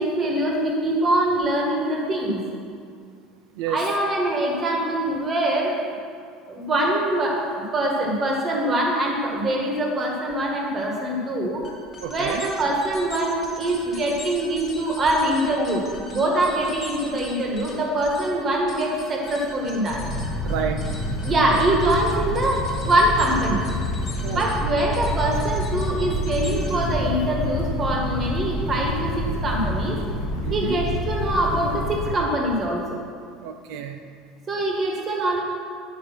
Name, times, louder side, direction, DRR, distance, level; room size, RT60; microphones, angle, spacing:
voice 1, 0.0-2.4 3.7-5.8 6.5-11.6 12.1-20.0 21.2-23.6 24.3-30.0 30.5-33.0 34.5-35.4, right 1 dB, 25° right, -1 dB, 1.5 m, -23 dB
sound 1, 11.6-27.1, left 2 dB, 20° left, 1.5 m, -42 dB
voice 2, 12.0-12.5 20.4-20.8 24.2-24.5 30.4-30.8 33.4-34.0, right 8 dB, 65° right, 6 dB, 0.4 m, -30 dB
sound 2, 19.9-32.1, left 1 dB, 55° left, 1.5 m, -27 dB
10.5 x 5.1 x 6.0 m, 2.2 s
cardioid pair, 165°, 0 cm